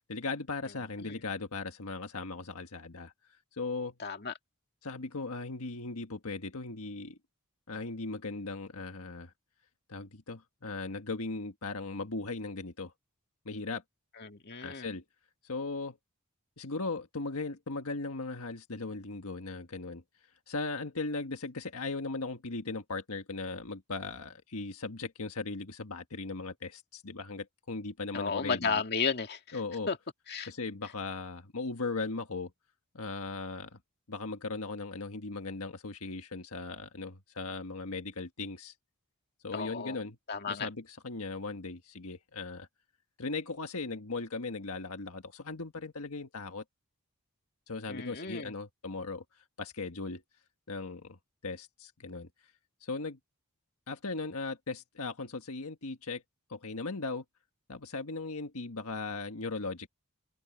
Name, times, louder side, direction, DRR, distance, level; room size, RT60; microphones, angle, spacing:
voice 1, 0.1-3.1 3.5-3.9 4.8-7.2 7.7-9.3 9.9-12.9 13.4-13.8 14.6-15.0 15.4-16.0 16.6-20.0 20.5-28.8 29.5-29.9 30.4-32.5 32.9-33.8 34.1-38.7 39.4-40.2 40.5-42.7 43.2-46.6 47.7-49.2 49.6-50.2 50.7-51.2 51.4-52.3 52.8-53.2 53.9-56.2 56.5-57.2 57.7-59.9, left 3 dB, 75° left, 1.5 m, -38 dB
voice 2, 4.0-4.3 14.2-14.9 28.1-29.6 29.9-30.0 30.3-30.5 39.5-40.0 40.3-40.7 47.9-48.5, left 5 dB, 45° left, 2.2 m, -33 dB
open air
head